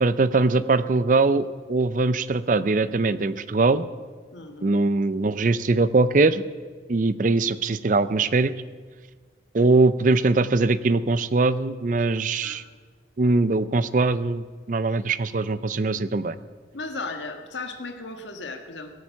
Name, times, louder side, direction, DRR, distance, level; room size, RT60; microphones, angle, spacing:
voice 1, 0.0-3.9 4.6-6.4 6.9-8.5 9.5-12.6 13.2-16.4, right 3 dB, 45° right, 15 dB, 0.5 m, -21 dB
voice 2, 4.3-4.8 12.4-12.6 13.2-13.3 16.7-18.9, left 3 dB, 85° left, 6 dB, 1.5 m, -36 dB
17.0 x 8.9 x 7.1 m, 1.5 s
head